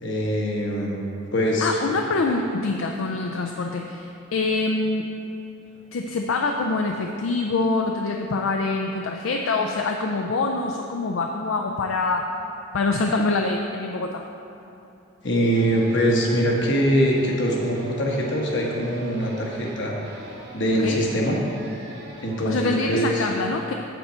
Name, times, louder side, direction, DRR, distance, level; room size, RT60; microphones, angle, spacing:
voice 1, 0.0-1.8 15.2-19.9 20.5-21.4 22.2-23.3, equal, 60° left, -2 dB, 1.2 m, -23 dB
voice 2, 1.6-5.1 5.9-12.3 12.7-14.2 20.8-21.0 22.5-23.7, left 3 dB, 75° left, 3 dB, 0.4 m, -25 dB
sound 1, 15.5-22.9, equal, 50° right, 1.1 m, -43 dB
7.4 x 6.8 x 4.3 m, 2.9 s
head